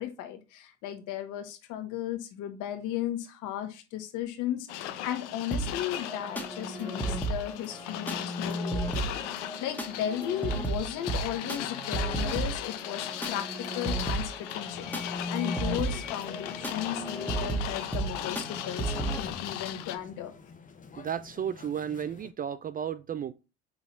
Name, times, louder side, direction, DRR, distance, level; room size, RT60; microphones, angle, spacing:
voice 1, 0.0-20.3, left 11 dB, 60° left, 1.6 m, -35 dB
sound 1, 4.7-20.0, left 12 dB, 80° left, 0.9 m, -38 dB
sound 2, 5.5-19.2, right 2 dB, 5° left, 1.6 m, -34 dB
sound 3, 14.8-22.3, left 5 dB, 25° left, 0.9 m, -47 dB
voice 2, 21.0-23.3, right 8 dB, 25° right, 0.4 m, -33 dB
5.7 x 3.9 x 4.4 m
hypercardioid pair, 80°, 35 cm